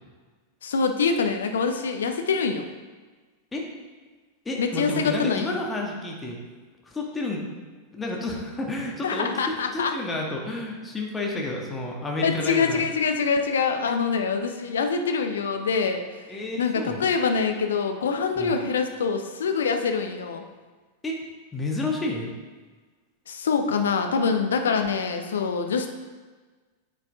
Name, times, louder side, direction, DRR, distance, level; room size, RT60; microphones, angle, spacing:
voice 1, 0.6-2.6 4.6-5.6 9.0-9.9 12.2-16.2 16.6-20.4 23.3-25.9, left 5 dB, 65° left, 5 dB, 0.8 m, -25 dB
voice 2, 4.4-6.4 6.8-7.4 7.9-12.9 16.3-17.0 18.3-18.6 21.0-21.2 21.5-22.3, left 2 dB, 15° left, -1 dB, 1.6 m, -30 dB
9.0 x 6.7 x 3.6 m, 1.4 s
figure-of-eight pair, 90°, 0 cm